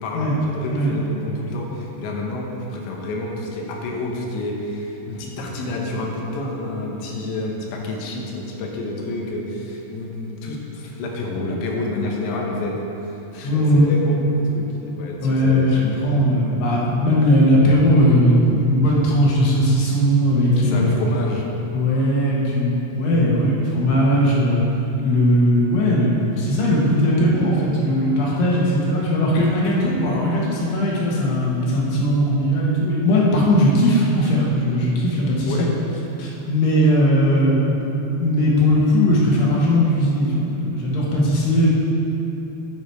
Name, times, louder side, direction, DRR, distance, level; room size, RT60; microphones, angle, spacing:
voice 1, 0.0-12.8 13.0-16.3 20.5-21.5 35.5-35.7, left 2 dB, 90° left, 0 dB, 3.3 m, -29 dB
voice 2, 13.4-13.9 15.2-21.0 21.7-24.6 25.0-35.5 36.2-37.7 38.2-41.7, equal, 70° left, -5 dB, 3.3 m, -18 dB
9.8 x 7.0 x 4.6 m, 3.0 s
omnidirectional pair, 4.9 m